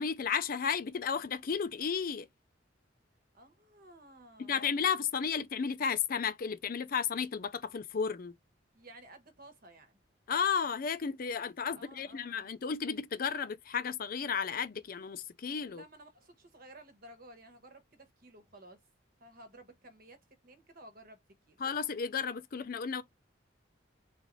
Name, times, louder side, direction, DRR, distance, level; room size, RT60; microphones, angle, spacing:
voice 1, 0.0-2.3 4.4-8.3 10.3-15.8 21.6-23.0, left 6 dB, 50° left, 0.4 m, -33 dB
voice 2, 3.3-4.8 8.7-10.0 11.8-12.5 15.7-18.8 19.2-21.2 21.5-21.6, right 1 dB, 50° right, 1.1 m, -55 dB
3.9 x 2.5 x 3.0 m
head